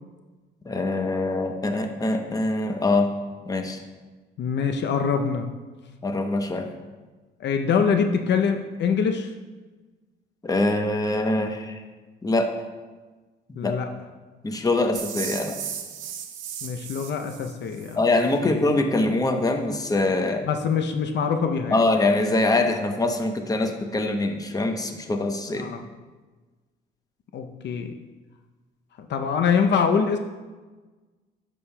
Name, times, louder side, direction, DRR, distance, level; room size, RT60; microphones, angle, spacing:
voice 1, 0.7-3.1 3.5-3.8 6.0-6.7 10.4-11.8 12.2-12.5 13.5-13.7 14.4-15.6 18.0-20.5 21.7-25.7, left 2 dB, 20° left, 5 dB, 0.8 m, -24 dB
voice 2, 4.4-5.5 7.4-9.3 13.6-13.9 16.6-18.0 18.4-18.5 20.4-21.8 25.6-25.8 27.3-27.9 29.1-30.2, left 6 dB, 60° left, 5 dB, 0.6 m, -24 dB
sound 1, 14.9-18.0, right 8 dB, 75° right, 0.8 m, -35 dB
11.0 x 6.4 x 2.2 m, 1.3 s
cardioid pair, 90°, 20 cm